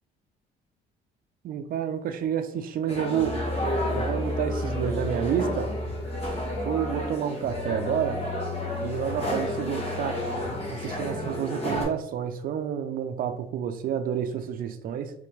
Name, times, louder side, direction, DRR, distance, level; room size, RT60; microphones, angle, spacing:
voice 1, 1.4-3.4 3.9-5.7 6.5-8.2 8.8-10.3 10.7-15.1, right 9 dB, 60° right, 8 dB, 0.5 m, -29 dB
sound 1, 2.9-11.8, left 1 dB, 35° left, 1.4 m, -30 dB
3.8 x 3.3 x 3.2 m, 0.71 s
cardioid pair, 110°, 17 cm